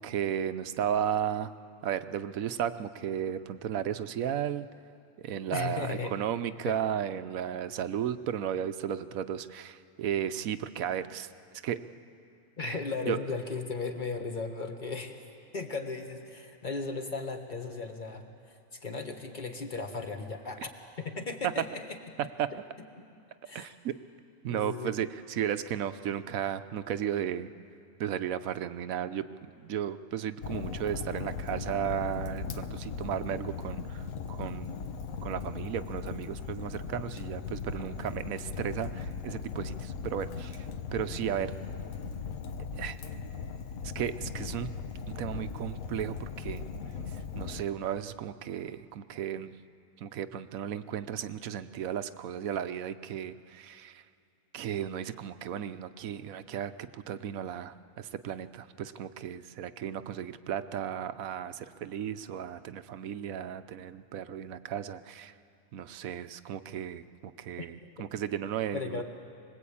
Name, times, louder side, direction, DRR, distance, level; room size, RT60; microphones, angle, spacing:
voice 1, 0.0-1.5 1.8-4.7 5.2-11.3 11.6-11.8 12.6-12.8 13.1-13.2 22.4-22.5 23.5-23.9 24.4-27.5 28.0-29.3 29.6-34.8 35.2-41.5 42.8-43.0 43.9-44.7 45.1-46.6 47.1-49.6 50.0-54.0 54.5-65.3 65.7-69.0, right 9 dB, 70° right, 12 dB, 1.1 m, -34 dB
voice 2, 5.5-6.1 6.6-6.7 12.6-15.2 15.5-20.7 21.0-22.0 23.0-23.1 23.5-23.7 24.5-24.9 67.6-68.1 68.7-69.0, left 4 dB, 30° left, 4 dB, 1.7 m, -36 dB
Fire, 30.4-47.6, left 6 dB, 65° left, 1.3 m, -38 dB
24.5 x 20.0 x 8.6 m, 2.7 s
omnidirectional pair, 1.6 m